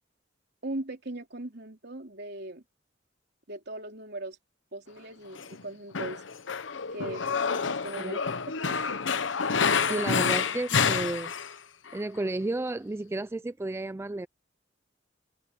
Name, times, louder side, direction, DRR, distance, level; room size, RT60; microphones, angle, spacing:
voice 1, 0.6-2.6 3.5-4.4 4.7-6.2 6.9-8.2 8.6-8.8 9.9-10.1, right 1 dB, 60° right, 3.7 m, -39 dB
Male speech man speaking, 5.4-5.6 5.9-11.5 11.9-12.0, left 6 dB, 80° left, 0.9 m, -28 dB
voice 2, 9.8-11.3 11.9-14.3, right 2 dB, 15° right, 0.3 m, -32 dB
head